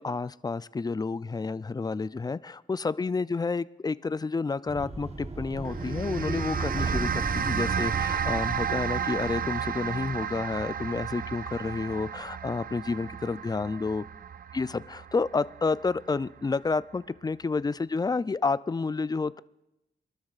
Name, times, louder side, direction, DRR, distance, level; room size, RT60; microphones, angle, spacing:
voice 1, 0.0-14.0 14.5-19.4, left 4 dB, 20° left, 16 dB, 0.4 m, -30 dB
sound 1, 4.7-9.9, right 2 dB, 35° right, 1.1 m, -36 dB
sound 2, 5.6-16.2, right 8 dB, 50° right, 0.4 m, -32 dB
25.0 x 12.5 x 2.4 m, 0.92 s
cardioid pair, 75°, 19 cm